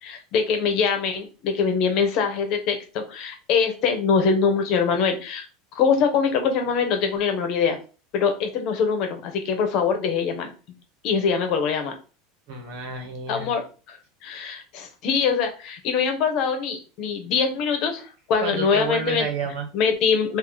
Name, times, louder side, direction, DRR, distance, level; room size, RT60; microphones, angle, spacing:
voice 1, 0.0-5.4 5.7-7.8 8.1-10.5 11.0-11.9 13.3-19.3 19.7-20.4, left 6 dB, 55° left, 6 dB, 1.0 m, -23 dB
voice 2, 12.5-13.5 18.4-19.6, right 4 dB, 70° right, 4 dB, 1.3 m, -30 dB
2.9 x 2.8 x 3.9 m, 0.34 s
supercardioid pair, 120°, 0 cm